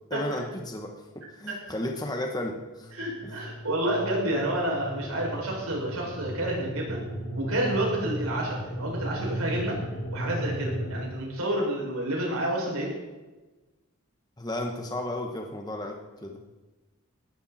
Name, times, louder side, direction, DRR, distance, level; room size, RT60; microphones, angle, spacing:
voice 1, 0.1-2.9 3.2-3.4 14.4-16.4, left 1 dB, 20° left, 2 dB, 1.5 m, -34 dB
sound 1, 2.8-11.0, equal, 50° left, 2.9 m, -35 dB
voice 2, 2.9-7.0 7.3-9.8 10.1-12.9, right 1 dB, 80° right, -2 dB, 6.5 m, -29 dB
19.0 x 14.0 x 4.4 m, 1.2 s
head